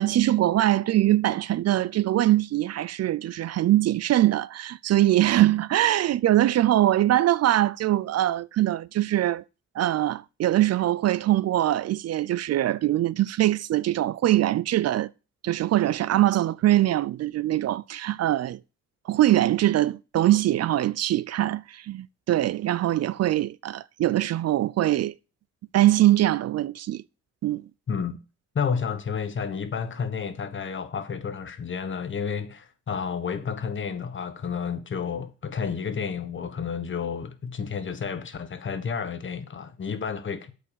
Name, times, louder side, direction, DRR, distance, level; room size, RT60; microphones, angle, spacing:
voice 1, 0.0-9.4 9.7-15.1 15.4-18.6 19.1-25.1 25.7-27.0 27.4-27.7, right 14 dB, 55° right, 0.5 m, -22 dB
voice 2, 27.9-28.2 28.5-40.5, left 6 dB, 40° left, 1.4 m, -31 dB
8.1 x 5.2 x 7.2 m
cardioid pair, 90°, 30 cm